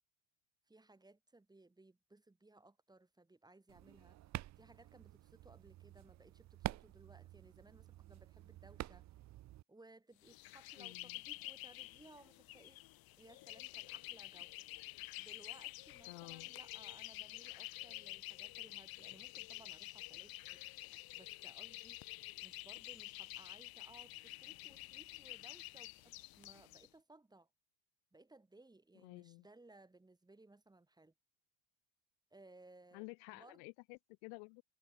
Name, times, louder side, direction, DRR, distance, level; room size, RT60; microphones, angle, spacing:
voice 1, 0.7-4.2 4.6-9.1 9.7-12.8 13.2-14.5 15.2-27.5 28.1-31.1 32.3-33.6, right 2 dB, 10° right, 2.3 m, -62 dB
sound 1, 3.7-9.6, right 15 dB, 40° right, 0.6 m, -49 dB
sound 2, 10.2-26.9, left 18 dB, 50° left, 1.1 m, -49 dB
voice 2, 10.8-11.2 16.1-16.5 29.0-29.4 32.9-34.6, left 40 dB or more, 70° left, 0.6 m, -52 dB
supercardioid pair, 110°, 45 cm